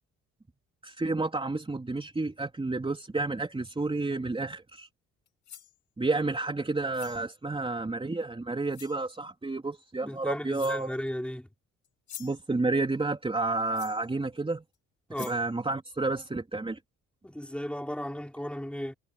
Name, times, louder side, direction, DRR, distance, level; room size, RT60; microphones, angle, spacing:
voice 1, 0.8-4.9 6.0-10.9 12.2-14.6 15.2-16.8, right 3 dB, 15° right, 3.7 m, -30 dB
sound 1, 5.3-5.8 6.9-7.3 8.2-8.3 8.7-9.0 10.1-10.2 10.5-10.9 11.8-12.5 13.7-14.1 14.7-14.8 15.2-15.5, left 11 dB, 70° left, 6.1 m, -47 dB
voice 2, 10.0-11.5 15.1-15.4 17.2-18.9, equal, 5° left, 5.1 m, -35 dB
cardioid pair, 90°, 30 cm